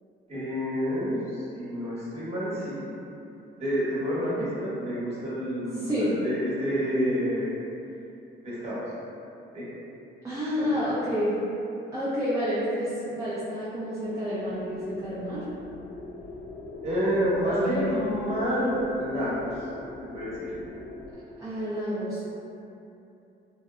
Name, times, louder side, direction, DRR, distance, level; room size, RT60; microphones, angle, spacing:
voice 1, 0.3-2.8 3.6-7.5 8.4-8.8 9.5-9.6 10.7-10.8 16.8-19.5 20.1-20.5, equal, 30° right, -10 dB, 1.0 m, -29 dB
voice 2, 5.8-6.1 10.2-11.3 11.9-15.4 17.4-18.0 21.4-22.3, equal, 15° right, -11 dB, 0.5 m, -29 dB
sound 1, 14.0-21.1, left 2 dB, 50° left, 0.4 m, -41 dB
2.6 x 2.1 x 2.3 m, 2.8 s
cardioid pair, 90°, 20 cm